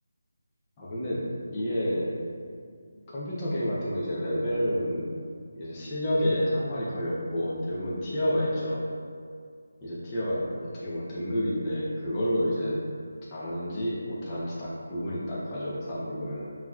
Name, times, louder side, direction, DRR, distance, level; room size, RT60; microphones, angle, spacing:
voice 1, 0.8-2.1 3.0-5.0 5.5-8.8 9.8-12.8 13.3-16.6, equal, 15° left, -9 dB, 0.7 m, -29 dB
7.4 x 2.9 x 2.4 m, 2.2 s
figure-of-eight pair, 175°, 0 cm